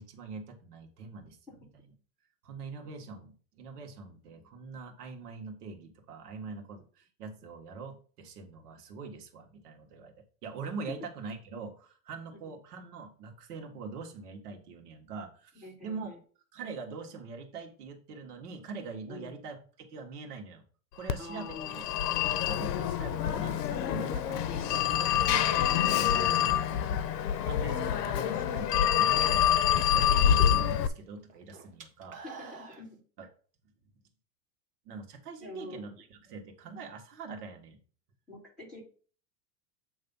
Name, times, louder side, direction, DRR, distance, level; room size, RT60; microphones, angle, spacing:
voice 1, 0.0-1.4 2.4-10.1 10.4-16.1 16.5-20.6 21.0-21.9 22.2-26.0 26.4-27.0 27.4-32.2 33.2-33.3 34.8-37.8, right 4 dB, 70° right, 2 dB, 1.7 m, -43 dB
voice 2, 15.6-16.2 19.1-19.4 21.2-21.9 26.1-26.4 32.2-33.0 35.4-35.9 38.3-38.8, left 2 dB, ahead, -5 dB, 2.9 m, -45 dB
Telephone, 21.1-30.9, left 10 dB, 80° left, 0.8 m, -26 dB
sound 1, 28.3-28.5 29.0-30.9 31.2-32.8, right 5 dB, 15° right, 0.5 m, -47 dB
8.2 x 3.2 x 5.4 m, 0.41 s
supercardioid pair, 160°, 48 cm